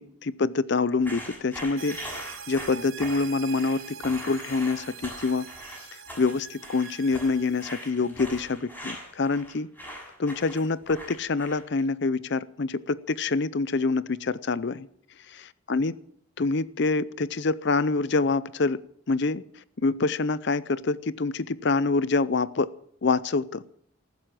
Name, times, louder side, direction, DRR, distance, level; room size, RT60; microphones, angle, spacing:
voice 1, 0.0-5.5 5.8-9.7 10.2-14.9 15.3-15.9 16.4-18.8 19.1-19.4 19.8-22.7 23.0-23.6, left 3 dB, 50° left, 18 dB, 0.5 m, -26 dB
sound 1, 1.0-11.8, equal, 10° left, 7.0 m, -41 dB
sound 2, 1.8-7.9, right 8 dB, 65° right, 1.0 m, -44 dB
14.5 x 12.0 x 7.6 m, 0.66 s
head